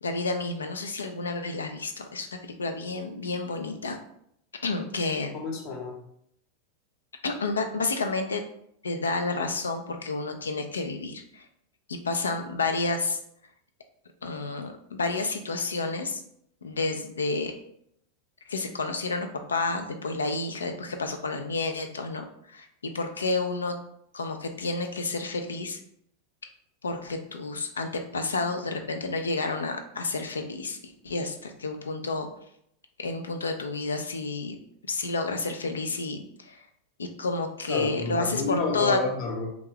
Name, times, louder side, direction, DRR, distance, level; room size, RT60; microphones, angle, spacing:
voice 1, 0.0-2.3 2.6-4.0 4.6-5.3 7.2-8.4 8.8-11.5 11.9-13.2 14.2-16.2 16.6-17.5 18.5-22.7 22.9-23.7 24.1-25.8 26.8-30.8 31.0-32.3 33.0-34.6 34.9-36.7 37.0-39.0, left 3 dB, 85° left, 6 dB, 0.3 m, -30 dB
voice 2, 5.3-6.0 37.7-39.6, left 3 dB, 50° left, 1 dB, 0.8 m, -30 dB
2.4 x 2.2 x 3.3 m, 0.71 s
hypercardioid pair, 95°, 0 cm